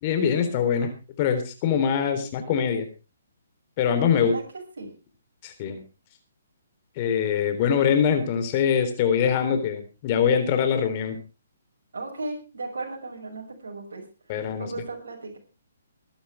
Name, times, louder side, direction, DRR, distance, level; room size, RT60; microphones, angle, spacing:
voice 1, 0.0-0.9 1.2-2.9 3.8-4.3 5.4-5.8 7.0-11.2 14.3-14.7, left 7 dB, 35° left, 8 dB, 3.7 m, -23 dB
voice 2, 4.1-4.4 4.8-4.9 11.9-14.0 14.6-15.4, right 3 dB, 70° right, 0 dB, 6.3 m, -35 dB
22.5 x 11.5 x 3.5 m, 0.31 s
figure-of-eight pair, 135°, 0 cm